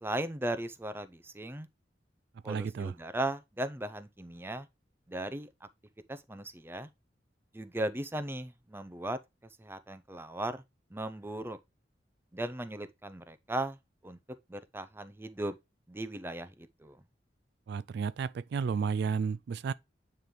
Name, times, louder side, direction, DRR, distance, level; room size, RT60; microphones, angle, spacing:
voice 1, 0.0-1.7 2.4-4.7 5.1-5.5 6.1-6.9 7.5-9.2 9.6-10.6 10.9-11.6 12.3-13.8 14.0-14.2 14.5-15.6 15.9-16.5 16.8-17.0, right 1 dB, 15° right, 0.6 m, -37 dB
voice 2, 2.5-2.9 17.7-19.7, right 6 dB, 65° right, 0.3 m, -32 dB
9.2 x 3.3 x 3.7 m
head